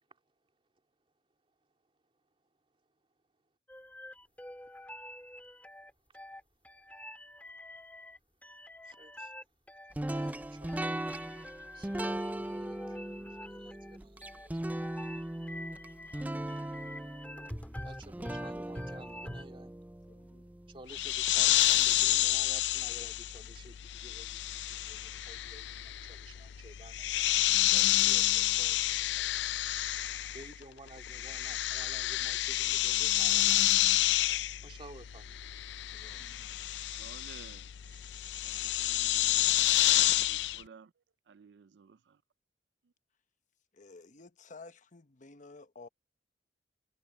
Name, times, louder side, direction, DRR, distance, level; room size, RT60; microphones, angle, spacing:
sound 1, 3.7-19.5, left 1 dB, 10° left, 2.2 m, -46 dB
voice 1, 8.8-9.3 10.1-11.0 11.7-14.6 17.8-19.7 20.7-29.7 30.3-33.9 34.6-35.4, right 2 dB, 30° right, 2.7 m, -53 dB
sound 2, 9.9-21.0, right 1 dB, 10° right, 0.4 m, -39 dB
voice 2, 20.1-20.5 35.9-36.3 43.7-45.9, left 3 dB, 45° left, 1.0 m, -52 dB
sound 3, 20.9-30.6 30.9-40.6, left 15 dB, 80° left, 0.4 m, -29 dB
voice 3, 36.1-36.5 36.9-38.0 38.4-40.9 41.3-42.2, right 6 dB, 75° right, 0.4 m, -56 dB
head